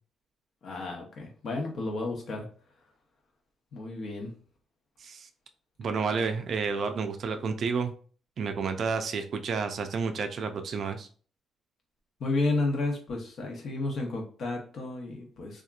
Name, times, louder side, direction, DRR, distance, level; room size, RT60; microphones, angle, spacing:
voice 1, 0.6-2.5 3.7-4.3 12.2-15.6, left 2 dB, 60° left, 1 dB, 0.9 m, -32 dB
voice 2, 5.8-7.9 8.4-11.1, right 5 dB, 55° right, 7 dB, 0.4 m, -30 dB
2.8 x 2.4 x 2.4 m, 0.42 s
cardioid pair, 90°, 0 cm